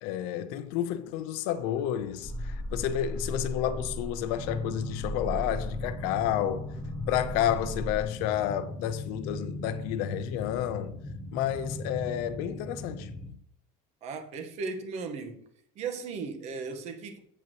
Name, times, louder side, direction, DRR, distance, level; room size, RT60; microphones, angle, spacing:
voice 1, 0.0-6.7 7.1-10.9 11.3-13.1, left 11 dB, 60° left, 0.8 m, -30 dB
sound 1, 2.2-8.0, left 1 dB, 5° left, 2.3 m, -36 dB
sound 2, 4.3-13.3, left 1 dB, 20° left, 1.3 m, -40 dB
voice 2, 14.0-15.5 15.7-17.2, right 4 dB, 40° right, 1.3 m, -36 dB
8.5 x 8.0 x 3.0 m
cardioid pair, 165°, 17 cm